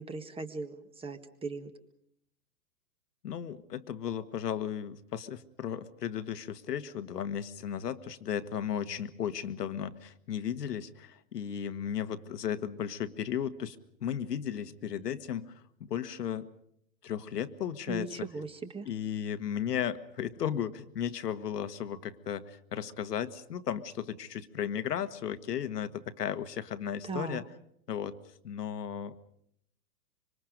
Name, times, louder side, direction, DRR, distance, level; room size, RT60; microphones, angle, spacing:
voice 1, 0.0-1.7 17.9-18.9 27.0-27.4, right 3 dB, 10° right, 9 dB, 1.7 m, -38 dB
voice 2, 3.2-16.5 17.0-18.3 18.9-27.4 27.9-28.2 28.4-29.2, left 9 dB, 70° left, 11 dB, 1.7 m, -35 dB
26.0 x 25.0 x 5.2 m, 0.72 s
hypercardioid pair, 120°, 49 cm